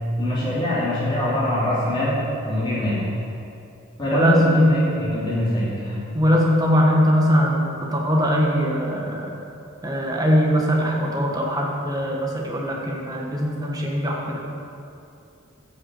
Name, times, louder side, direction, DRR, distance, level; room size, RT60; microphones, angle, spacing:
voice 1, 0.2-3.2 4.0-6.0, left 1 dB, 25° left, -9 dB, 2.8 m, -23 dB
voice 2, 4.1-4.7 6.1-9.3 9.8-14.4, equal, 20° right, -1 dB, 1.4 m, -21 dB
12.0 x 6.0 x 7.7 m, 2.6 s
head